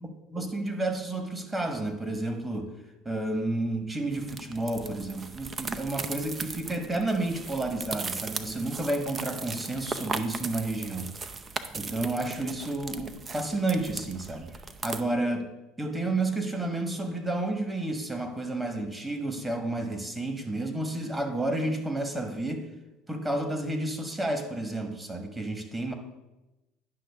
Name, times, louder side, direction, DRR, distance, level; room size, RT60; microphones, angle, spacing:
voice 1, 0.0-2.7 3.0-11.1 11.8-14.5 14.8-15.5 15.8-22.6 23.1-25.9, right 2 dB, 15° right, 5 dB, 1.4 m, -31 dB
sound 1, 4.1-15.0, right 4 dB, 30° right, 0.6 m, -38 dB
10.0 x 5.9 x 3.6 m, 1.0 s
hypercardioid pair, 80°, 0 cm